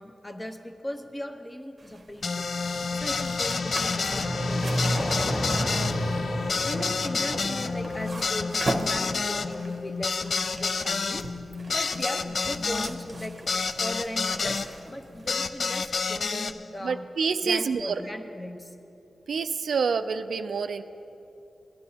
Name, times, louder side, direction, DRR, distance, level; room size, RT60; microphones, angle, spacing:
voice 1, 0.0-2.5 2.9-5.8 6.6-11.3 11.7-13.3 13.8-14.6 14.9-17.1 17.4-18.7, left 1 dB, 20° left, 5 dB, 0.7 m, -38 dB
sound 1, 1.8-16.1, right 2 dB, 45° right, 0.7 m, -40 dB
sound 2, 2.2-14.7 15.3-16.5, left 4 dB, 65° left, 0.3 m, -29 dB
sound 3, 2.2-8.3, equal, 45° left, 1.8 m, -31 dB
voice 2, 16.8-18.0 19.3-20.8, right 5 dB, 85° right, 9 dB, 0.3 m, -27 dB
16.5 x 9.9 x 2.8 m, 2.9 s
cardioid pair, 75°, 0 cm